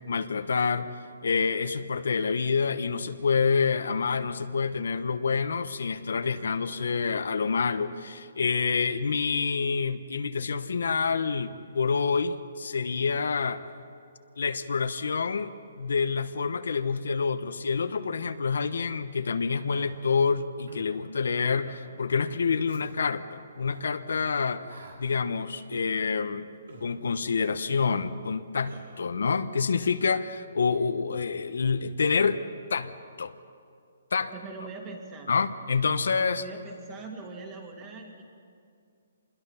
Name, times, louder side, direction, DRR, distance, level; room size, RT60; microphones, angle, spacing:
voice 1, 0.1-0.9 1.2-13.6 14.4-26.5 26.8-32.4 32.7-32.9 33.2-33.3 34.1-34.3 35.3-36.4, left 5 dB, 80° left, 10 dB, 1.0 m, -27 dB
Human voice, 19.7-19.9 20.7-20.9 21.7-21.8 22.7-22.8 23.6-23.8 24.7-25.0 25.7-25.9 26.7-26.9 27.7-27.9 28.7-28.8, right 3 dB, 80° right, 4.7 m, -47 dB
voice 2, 34.3-35.3 36.1-38.2, right 3 dB, 20° right, 2 dB, 2.3 m, -41 dB
26.0 x 21.0 x 5.7 m, 2.3 s
hypercardioid pair, 165°, 0 cm